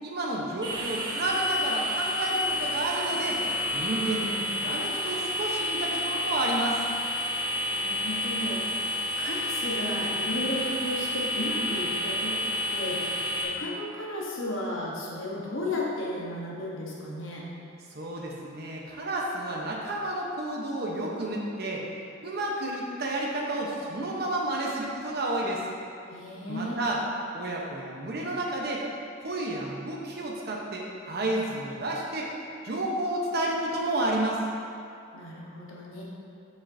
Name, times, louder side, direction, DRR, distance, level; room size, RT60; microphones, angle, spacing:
voice 1, 0.0-3.4 3.7-6.8 17.9-21.9 22.2-25.6 26.5-27.0 27.3-28.9 29.2-32.3 32.6-34.5, right 1 dB, 50° right, -2 dB, 1.0 m, -31 dB
sound 1, 0.6-13.4, left 1 dB, 20° right, 1.2 m, -30 dB
voice 2, 7.7-8.6 9.2-13.1 13.4-17.5 26.1-26.8 35.1-36.0, left 1 dB, 75° left, -4 dB, 1.2 m, -34 dB
8.3 x 6.6 x 2.7 m, 2.5 s
head